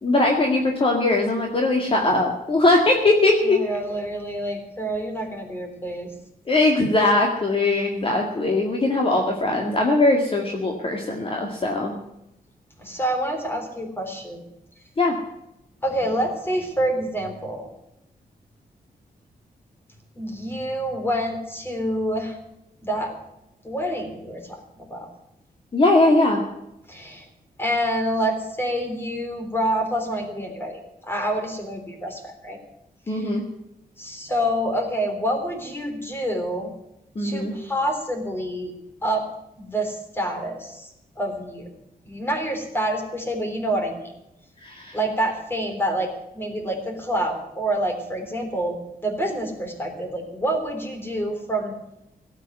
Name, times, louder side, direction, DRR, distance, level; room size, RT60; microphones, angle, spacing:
voice 1, 0.0-3.6 6.5-11.9 15.0-15.2 25.7-26.4 33.1-33.4 37.2-37.5 44.6-45.0, left 2 dB, 35° left, 1 dB, 2.1 m, -20 dB
voice 2, 3.4-6.1 12.8-14.4 15.8-17.7 20.2-22.4 22.8-23.1 23.6-25.1 26.9-27.3 27.6-32.6 33.1-33.4 34.0-36.7 37.2-38.7 39.0-39.3 39.6-41.7 42.0-44.0 44.9-51.8, right 1 dB, 15° left, 4 dB, 3.5 m, -27 dB
17.5 x 8.2 x 9.3 m, 0.86 s
wide cardioid pair, 155°, 16 cm